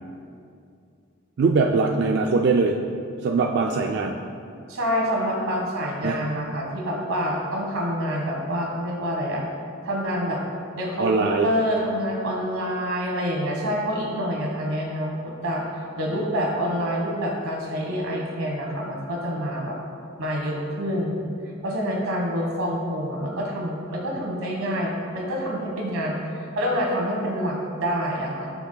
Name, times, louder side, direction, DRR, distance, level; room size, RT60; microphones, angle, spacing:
voice 1, 1.4-2.8 3.2-4.2 6.0-6.2 11.0-11.5, right 4 dB, 55° right, 1 dB, 0.3 m, -21 dB
voice 2, 4.7-9.4 9.8-10.4 10.7-19.8 20.2-21.3 21.6-28.5, equal, 90° right, -1 dB, 1.4 m, -27 dB
11.5 x 5.8 x 2.3 m, 2.4 s
head